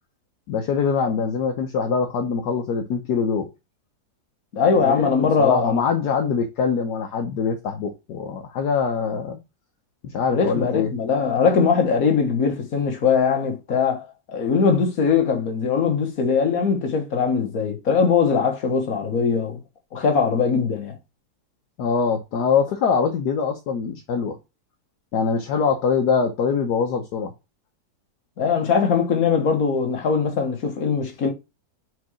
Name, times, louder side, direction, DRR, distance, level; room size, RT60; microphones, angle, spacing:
voice 1, 0.5-3.5 4.8-9.4 10.0-10.9 21.8-24.4 25.1-27.3, left 5 dB, 75° left, 1.4 m, -23 dB
voice 2, 4.5-5.8 10.3-19.6 19.9-21.0 28.4-31.3, left 5 dB, 60° left, 1.7 m, -21 dB
4.7 x 4.7 x 4.7 m
omnidirectional pair, 1.8 m